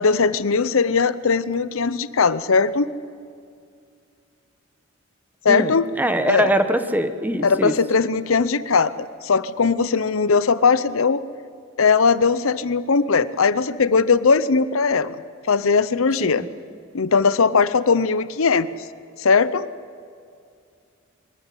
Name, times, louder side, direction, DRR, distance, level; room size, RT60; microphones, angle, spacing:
voice 1, 0.0-2.9 5.4-5.9 6.2-6.5 7.4-11.2 11.8-15.2 15.5-16.4 16.9-18.7 19.2-19.7, left 5 dB, 75° left, 16 dB, 0.7 m, -19 dB
voice 2, 5.5-7.7 16.2-16.5, right 1 dB, 10° right, 9 dB, 1.1 m, -22 dB
23.0 x 14.5 x 10.0 m, 2.3 s
head